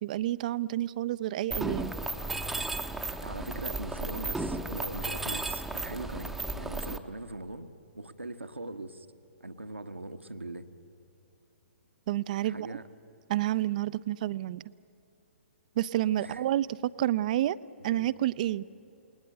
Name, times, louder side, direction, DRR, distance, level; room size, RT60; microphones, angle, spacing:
voice 1, 0.0-1.9 12.1-12.8 13.3-14.6 15.8-17.6 17.8-18.7, right 13 dB, 40° right, 17 dB, 0.5 m, -29 dB
Mechanisms, 1.5-7.0, right 2 dB, ahead, 0.8 m, -34 dB
voice 2, 3.2-7.7 7.9-9.1 9.4-10.7 12.4-12.9 16.2-16.4 17.8-18.1, right 2 dB, 80° right, 9 dB, 1.3 m, -41 dB
29.0 x 19.5 x 8.0 m, 2.9 s
figure-of-eight pair, 120°, 6 cm